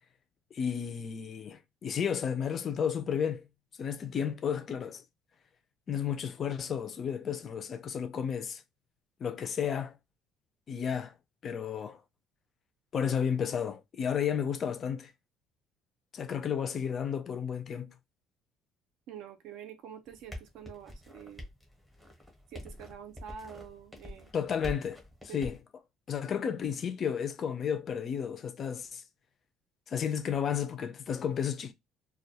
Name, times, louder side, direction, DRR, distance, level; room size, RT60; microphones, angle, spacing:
voice 1, 0.5-3.4 3.8-5.0 5.9-8.6 9.2-9.9 10.7-11.1 11.4-12.0 12.9-15.1 16.1-17.9 24.3-25.0 25.3-25.6 26.1-29.0 29.9-31.7, left 7 dB, 35° left, 0.3 m, -32 dB
voice 2, 19.1-21.5 22.5-24.3 25.3-25.4, right 8 dB, 70° right, 0.5 m, -47 dB
sound 1, 20.1-25.6, left 1 dB, 5° right, 0.7 m, -45 dB
2.2 x 2.1 x 2.7 m
cardioid pair, 160°, 0 cm